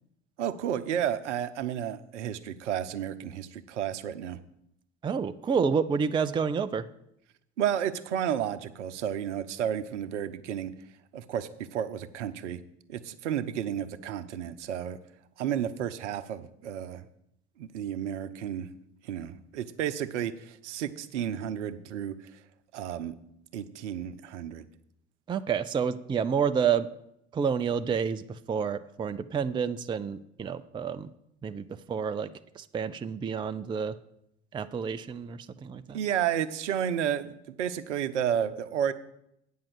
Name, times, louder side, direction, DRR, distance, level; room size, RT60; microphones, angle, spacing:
voice 1, 0.4-4.4 7.6-10.7 11.1-12.6 12.9-15.0 15.4-17.0 17.6-18.7 19.0-22.1 22.7-23.2 23.5-24.7 35.9-38.9, right 9 dB, 75° right, 12 dB, 0.7 m, -32 dB
voice 2, 5.0-6.9 25.3-26.9 27.3-31.1 31.4-32.3 32.6-33.9 34.5-36.0, right 6 dB, 15° right, 13 dB, 0.4 m, -29 dB
8.8 x 5.5 x 7.8 m, 0.78 s
figure-of-eight pair, 65°, 36 cm